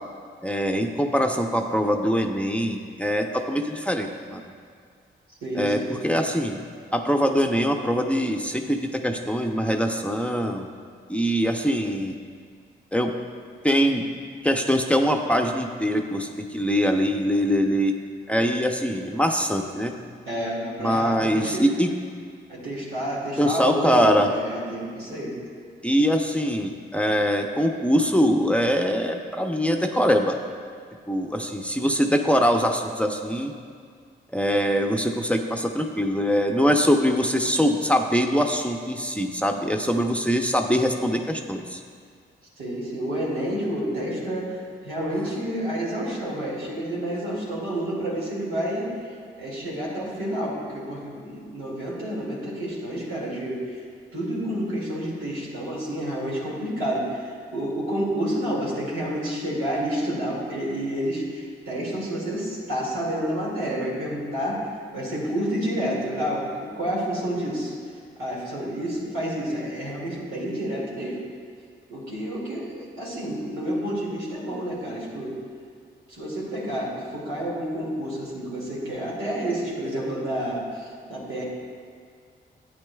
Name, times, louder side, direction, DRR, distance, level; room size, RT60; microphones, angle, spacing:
voice 1, 0.4-4.4 5.6-6.6 6.9-10.7 11.1-12.2 12.9-13.1 13.6-14.0 14.4-17.9 18.3-19.9 20.8-21.9 23.4-24.3 25.8-30.4 31.1-33.5 34.3-41.8, equal, 5° left, 3 dB, 0.7 m, -23 dB
voice 2, 5.4-5.9 20.2-21.6 22.5-25.4 42.6-48.9 49.4-53.6 54.1-64.7 64.9-67.7 68.2-71.2 71.9-75.3 76.1-81.4, right 1 dB, 90° right, -6 dB, 2.3 m, -29 dB
11.5 x 8.5 x 2.3 m, 2.1 s
supercardioid pair, 50°, 21 cm